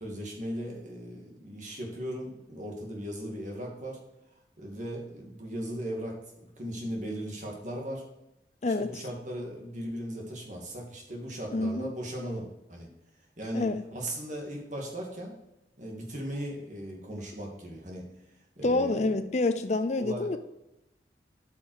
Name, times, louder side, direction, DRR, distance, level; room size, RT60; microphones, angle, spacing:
voice 1, 0.0-4.0 4.6-8.0 8.7-12.9 13.4-15.3 15.8-18.0 18.6-19.1 20.0-20.3, equal, 45° right, 2.2 m, -37 dB
voice 2, 8.6-9.0 11.5-11.9 13.5-13.8 18.6-20.4, left 2 dB, 40° left, 0.5 m, -27 dB
8.5 x 5.8 x 4.8 m
head